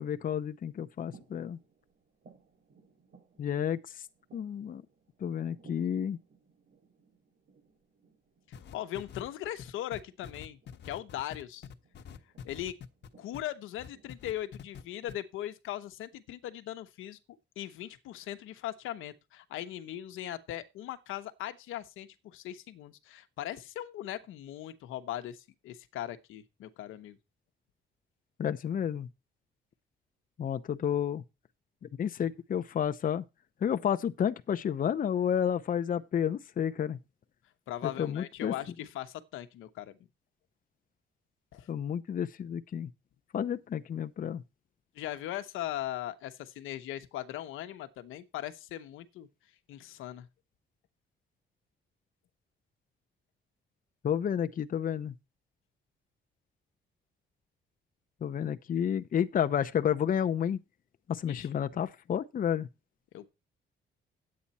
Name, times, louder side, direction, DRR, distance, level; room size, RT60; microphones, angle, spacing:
voice 1, 0.0-1.6 3.4-4.0 4.3-4.8 5.2-6.2 28.4-29.1 30.4-31.2 31.8-33.2 33.6-37.0 37.8-38.5 41.7-42.9 43.3-44.4 54.0-55.1 58.2-60.6 61.1-62.7, left 9 dB, 45° left, 0.7 m, -31 dB
sound 1, 0.9-15.1, right 4 dB, 55° right, 5.1 m, -63 dB
sound 2, 8.5-13.5 13.8-14.8 15.1-15.2, left 7 dB, 60° left, 1.1 m, -46 dB
voice 2, 8.7-10.6 10.8-11.7 12.4-12.7 13.2-17.2 17.6-27.2 37.7-39.9 41.5-41.7 44.9-49.3 49.7-50.3 61.3-61.5 63.1-63.3, left 13 dB, 90° left, 1.0 m, -39 dB
10.5 x 8.7 x 4.2 m
cardioid pair, 90°, 20 cm